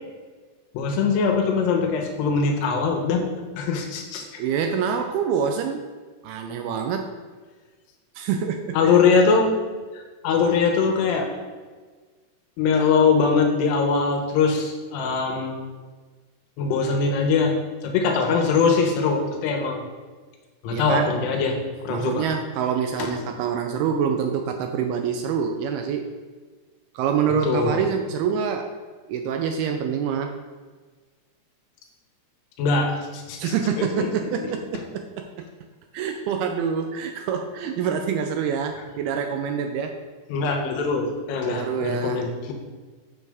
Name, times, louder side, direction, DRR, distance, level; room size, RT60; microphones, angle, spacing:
voice 1, 0.7-4.2 8.7-9.5 9.9-11.3 12.6-15.6 16.6-19.8 20.6-21.6 21.8-22.3 23.0-23.1 27.4-27.9 32.6-34.1 34.4-34.5 40.3-42.5, left 5 dB, 85° left, 2 dB, 3.0 m, -22 dB
voice 2, 4.4-5.9 6.2-7.1 8.2-9.0 20.7-21.1 21.9-26.1 26.9-28.7 29.1-30.4 33.4-35.5 35.9-40.0 41.5-42.2, right 7 dB, 80° right, 5 dB, 2.3 m, -26 dB
7.4 x 6.2 x 3.5 m, 1.4 s
omnidirectional pair, 4.8 m